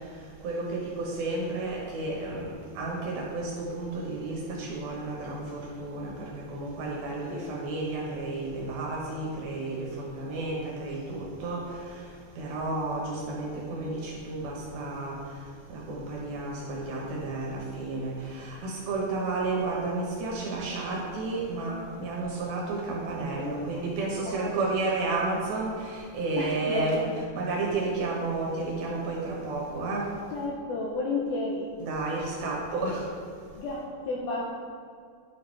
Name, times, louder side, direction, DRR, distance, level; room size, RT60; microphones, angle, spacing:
voice 1, 0.4-11.6 12.4-15.2 15.7-27.1 27.3-30.1 31.8-33.0, right 3 dB, 70° right, -2 dB, 2.7 m, -32 dB
voice 2, 24.1-24.6 26.4-27.1 30.3-31.7 33.6-34.4, left 2 dB, 80° left, -3 dB, 2.2 m, -32 dB
10.5 x 6.8 x 3.3 m, 2.2 s
omnidirectional pair, 5.1 m